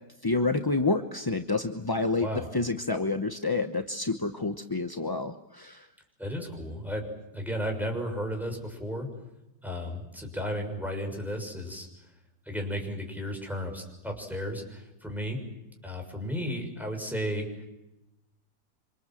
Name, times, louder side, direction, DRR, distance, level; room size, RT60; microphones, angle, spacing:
voice 1, 0.2-2.3 2.5-5.9, left 3 dB, 20° left, 7 dB, 0.7 m, -28 dB
voice 2, 6.2-7.0 7.3-9.1 9.6-11.9 12.5-15.4 15.8-17.5, equal, ahead, 3 dB, 6.5 m, -34 dB
27.5 x 26.5 x 7.7 m, 0.93 s
omnidirectional pair, 1.8 m